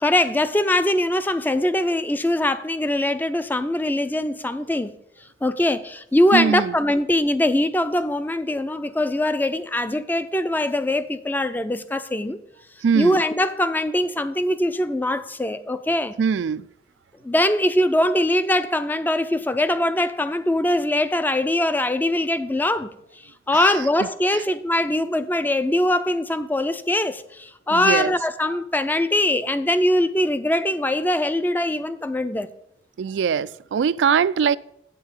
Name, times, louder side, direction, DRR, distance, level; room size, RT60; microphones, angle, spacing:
voice 1, 0.0-4.9 5.4-12.4 12.9-16.2 17.2-22.9 23.5-32.5, left 1 dB, 10° left, 0.4 m, -22 dB
voice 2, 6.3-6.7 12.8-13.2 16.2-16.7 23.5-23.7 27.7-28.1 33.0-34.6, right 6 dB, 85° right, 0.3 m, -21 dB
8.4 x 7.9 x 5.5 m
head